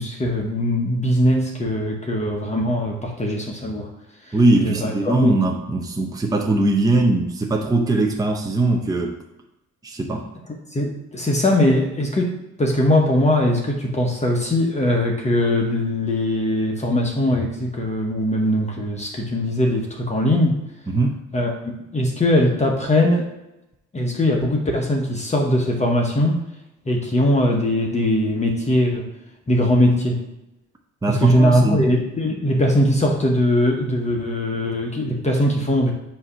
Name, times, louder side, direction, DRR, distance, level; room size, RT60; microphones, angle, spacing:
voice 1, 0.0-3.9 4.2-5.4 10.7-20.6 21.3-21.6 21.9-23.3 23.9-26.4 26.9-29.1 29.5-30.2 31.1-35.9, left 1 dB, 25° left, 0 dB, 1.0 m, -20 dB
voice 2, 4.3-9.1 9.8-10.2 20.9-21.2 31.0-31.8, right 2 dB, 10° right, 1 dB, 0.8 m, -20 dB
7.6 x 2.8 x 5.5 m, 0.91 s
cardioid pair, 90°, 30 cm